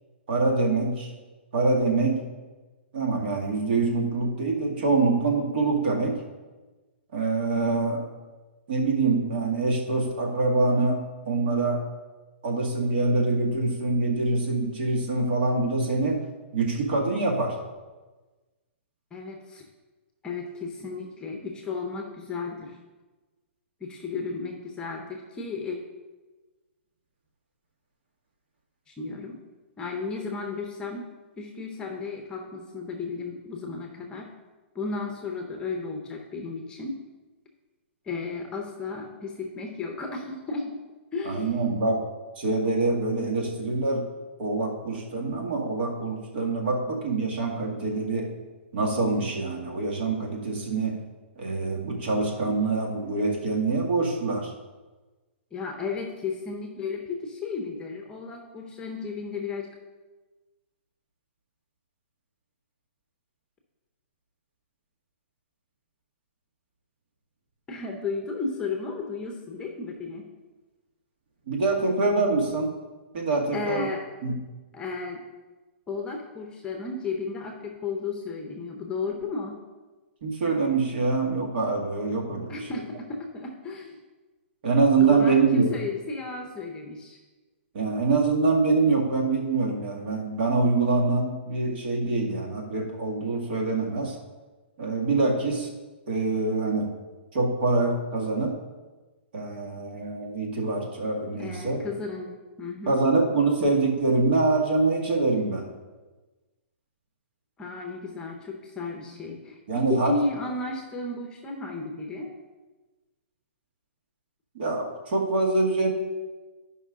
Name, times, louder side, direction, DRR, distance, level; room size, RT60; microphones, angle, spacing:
voice 1, 0.3-1.1 1.5-2.2 2.9-6.2 7.1-8.0 8.7-11.9 12.4-16.2 16.5-17.6 41.2-42.0 42.4-44.0 44.4-48.3 48.7-51.0 51.4-54.5 71.5-72.7 73.1-73.9 74.2-74.3 80.2-82.7 84.6-85.7 87.7-94.2 94.8-95.7 96.1-96.9 97.3-98.6 99.3-101.8 102.9-105.7 109.7-110.1 114.6-115.9, right 3 dB, 55° right, 0 dB, 2.0 m, -25 dB
voice 2, 19.1-19.6 20.2-22.8 23.8-25.8 28.9-29.4 29.8-31.1 31.4-34.3 34.7-37.0 38.1-40.8 41.1-41.6 55.5-59.7 67.7-70.3 73.5-74.0 74.7-75.2 75.9-79.6 82.5-84.0 85.0-87.2 101.4-103.0 107.6-112.3, left 4 dB, 15° left, 2 dB, 0.9 m, -34 dB
10.5 x 5.5 x 3.8 m, 1.2 s
hypercardioid pair, 150°, 7 cm